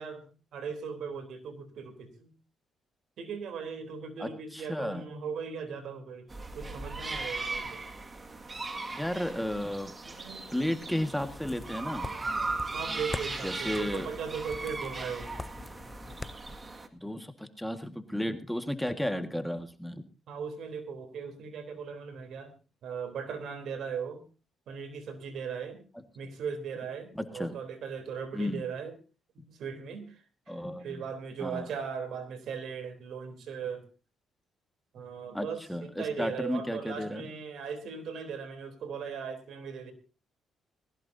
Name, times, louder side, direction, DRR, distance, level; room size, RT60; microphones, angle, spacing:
voice 1, 0.0-2.3 3.2-6.3 6.5-7.8 10.0-11.2 12.0-15.3 16.0-16.2 20.3-22.5 22.8-24.2 24.7-25.8 26.2-29.0 29.4-33.9 34.9-39.9, right 6 dB, 70° right, 9 dB, 3.6 m, -38 dB
voice 2, 4.2-5.0 8.9-9.9 10.5-12.1 13.4-14.1 16.9-20.0 27.2-27.5 28.3-28.6 30.5-31.0 31.4-31.7 35.3-37.3, left 1 dB, 5° left, 7 dB, 1.7 m, -33 dB
sound 1, 6.3-16.9, right 3 dB, 25° right, 2.0 m, -38 dB
sound 2, 11.2-16.3, left 2 dB, 20° left, 0.7 m, -43 dB
20.0 x 17.0 x 2.8 m, 0.32 s
cardioid pair, 90°, 0 cm